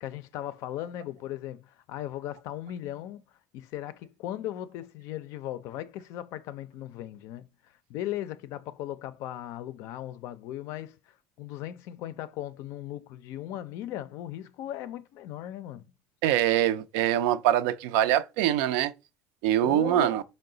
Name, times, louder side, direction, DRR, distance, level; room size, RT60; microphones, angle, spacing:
voice 1, 0.0-3.2 3.5-7.5 7.9-11.0 11.4-15.9 19.6-20.1, left 12 dB, 65° left, 0.4 m, -37 dB
voice 2, 16.2-18.9 19.4-20.2, right 12 dB, 85° right, 0.4 m, -24 dB
4.6 x 2.1 x 3.8 m
cardioid pair, 120°, 5 cm